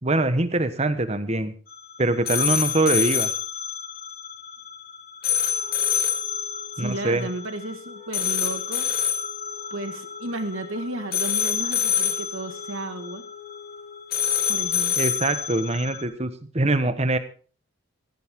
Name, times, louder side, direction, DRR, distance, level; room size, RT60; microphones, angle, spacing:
voice 1, 0.0-1.5 2.0-3.3 6.8-7.3 15.0-17.2, right 2 dB, 30° right, 11 dB, 1.2 m, -23 dB
sound 1, 1.7-16.0, left 8 dB, 50° left, 2.5 m, -27 dB
Wind instrument woodwind instrument, 5.5-15.2, left 4 dB, 5° left, 2.4 m, -45 dB
voice 2, 6.8-8.9 9.7-13.2 14.5-15.0, right 1 dB, 85° right, 8 dB, 1.8 m, -33 dB
16.0 x 15.0 x 3.7 m, 0.40 s
head